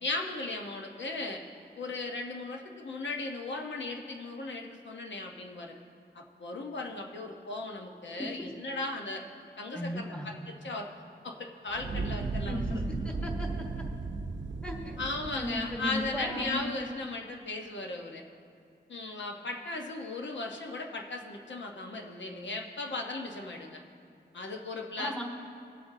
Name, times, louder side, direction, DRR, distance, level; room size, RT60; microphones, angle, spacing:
voice 1, 0.0-1.4 1.8-5.7 6.1-9.2 9.6-10.9 11.2-12.8 15.0-18.2 18.9-23.8 24.3-25.1, left 2 dB, 80° left, 1 dB, 0.9 m, -37 dB
voice 2, 9.7-10.3 12.5-12.8 13.0-13.5 13.8-13.9 14.6-15.0 15.3-16.7 25.0-25.2, left 1 dB, 5° left, 0 dB, 1.3 m, -36 dB
Fire, 11.7-16.9, right 3 dB, 80° right, 0.6 m, -36 dB
21.0 x 7.9 x 2.7 m, 2.4 s
wide cardioid pair, 110°, 19 cm